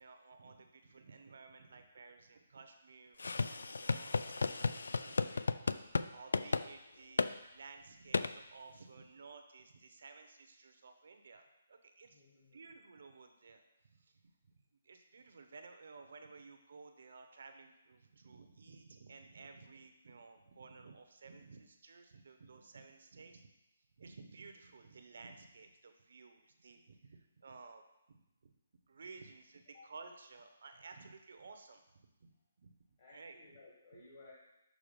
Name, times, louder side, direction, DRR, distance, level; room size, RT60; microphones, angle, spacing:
voice 1, 0.0-12.2 12.5-13.6 13.9-14.3 14.8-23.5 24.0-28.5 28.9-31.8 32.2-32.7 33.1-33.4, right 4 dB, 55° right, 6 dB, 0.8 m, -55 dB
sound 1, 3.2-6.1 6.3-6.7 7.2-7.3 8.1-8.3, left 4 dB, 85° left, 0.3 m, -34 dB
voice 2, 12.1-12.7 29.7-29.9 33.0-34.3, left 2 dB, 30° left, -6 dB, 1.3 m, -58 dB
6.2 x 4.7 x 5.1 m, 0.91 s
hypercardioid pair, 175°, 0 cm